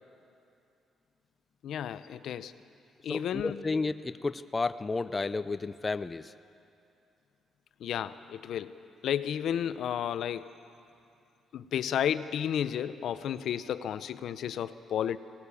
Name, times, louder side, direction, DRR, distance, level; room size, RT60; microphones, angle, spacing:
voice 1, 1.6-2.5 3.0-3.6 7.8-10.5 11.5-15.2, left 9 dB, 70° left, 13 dB, 0.6 m, -32 dB
voice 2, 3.1-6.3, left 3 dB, 25° left, 13 dB, 0.5 m, -32 dB
21.0 x 17.5 x 7.0 m, 2.7 s
cardioid pair, 90°, 0 cm